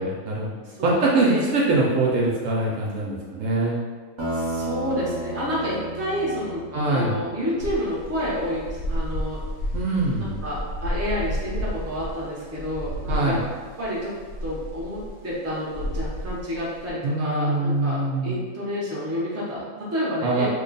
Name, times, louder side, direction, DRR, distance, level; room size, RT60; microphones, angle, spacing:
voice 1, 0.0-3.7 6.7-7.2 9.7-10.4 13.1-13.4 17.0-18.4 20.2-20.5, right 2 dB, 70° right, -4 dB, 0.9 m, -23 dB
voice 2, 0.6-1.4 4.3-9.4 10.2-13.4 13.8-14.2 14.4-20.5, equal, 15° right, -7 dB, 0.5 m, -29 dB
sound 1, 4.2-8.5, right 1 dB, 35° right, 0.9 m, -33 dB
sound 2, 7.6-16.9, equal, 70° left, 1.0 m, -32 dB
3.0 x 2.2 x 3.9 m, 1.5 s
omnidirectional pair, 1.6 m